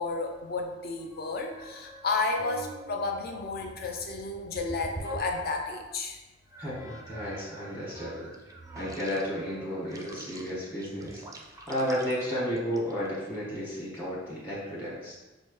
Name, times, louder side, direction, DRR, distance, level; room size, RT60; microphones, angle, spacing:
voice 1, 0.0-6.2, left 3 dB, 55° left, 3 dB, 0.5 m, -32 dB
sound 1, 1.0-6.0 6.5-13.2, right 1 dB, 20° right, 0.4 m, -45 dB
voice 2, 6.6-8.3 8.7-11.2 11.7-15.1, equal, 15° left, -10 dB, 1.3 m, -33 dB
5.9 x 2.1 x 3.1 m, 1.1 s
head